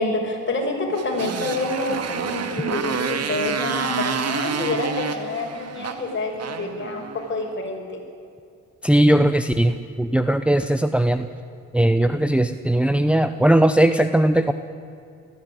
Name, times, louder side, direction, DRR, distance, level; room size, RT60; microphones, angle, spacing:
voice 1, 0.0-8.0, left 2 dB, 40° left, 0 dB, 6.2 m, -27 dB
Motorcycle, 0.9-7.4, right 6 dB, 55° right, 1.9 m, -29 dB
voice 2, 8.8-11.3 11.7-14.5, right 1 dB, 5° right, 9 dB, 0.8 m, -18 dB
19.0 x 15.0 x 9.9 m, 2.5 s
cardioid pair, 90°, 30 cm